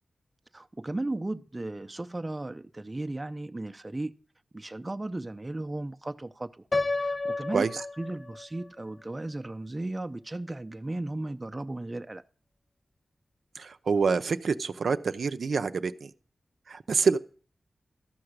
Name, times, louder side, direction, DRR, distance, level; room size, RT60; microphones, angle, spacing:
voice 1, 0.5-4.1 4.5-6.6 7.0-12.2, right 2 dB, 25° right, 0.6 m, -35 dB
Piano, 6.7-8.7, left 3 dB, 40° left, 0.4 m, -31 dB
voice 2, 13.6-16.1 16.7-17.2, right 5 dB, 75° right, 0.6 m, -27 dB
13.0 x 5.9 x 6.5 m
wide cardioid pair, 80°, 0 cm